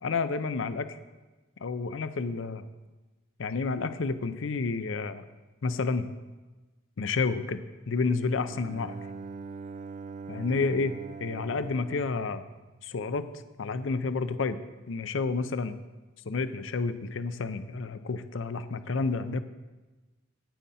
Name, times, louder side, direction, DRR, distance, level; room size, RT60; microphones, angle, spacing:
voice 1, 0.0-1.0 1.6-2.6 3.4-5.2 5.6-6.1 7.0-9.0 10.3-12.4 12.8-14.6 14.9-15.8 16.3-19.4, left 4 dB, 75° left, 12 dB, 0.5 m, -30 dB
Bowed string instrument, 8.4-13.3, right 4 dB, 40° right, 0.3 m, -43 dB
9.2 x 8.5 x 4.2 m, 1.2 s
head